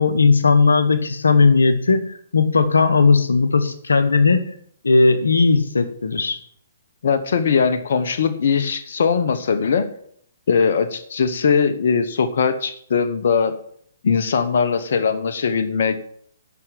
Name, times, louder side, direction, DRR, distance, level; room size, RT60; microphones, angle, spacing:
voice 1, 0.0-4.5 4.8-6.4, left 4 dB, 85° left, 10 dB, 1.1 m, -17 dB
voice 2, 7.0-9.9 10.5-13.6 14.0-16.0, left 6 dB, 65° left, 9 dB, 1.1 m, -20 dB
9.7 x 6.1 x 7.5 m, 0.63 s
hypercardioid pair, 135°, 0 cm